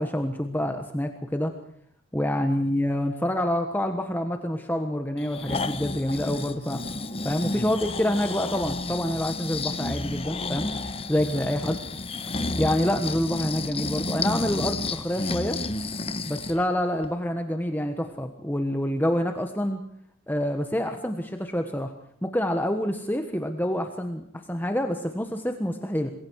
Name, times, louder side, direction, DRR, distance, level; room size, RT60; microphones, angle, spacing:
voice 1, 0.0-1.5 2.1-6.8 7.2-11.8 12.6-15.6 16.3-19.8 20.3-21.9 22.2-26.1, left 1 dB, 10° left, 5 dB, 1.4 m, -27 dB
Breathing, 5.2-16.6 17.0-17.1, left 3 dB, 25° left, 1.3 m, -31 dB
27.0 x 21.5 x 4.8 m, 0.65 s
head